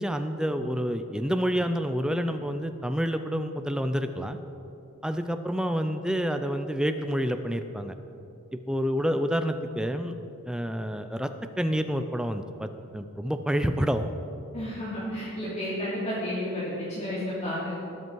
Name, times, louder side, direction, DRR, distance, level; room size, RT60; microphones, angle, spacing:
voice 1, 0.0-4.4 5.0-8.0 8.5-10.1 10.4-11.3 11.6-14.1, equal, 5° right, 8 dB, 0.4 m, -28 dB
voice 2, 14.5-17.7, left 1 dB, 30° left, -10 dB, 2.9 m, -31 dB
20.0 x 8.2 x 4.7 m, 2.7 s
head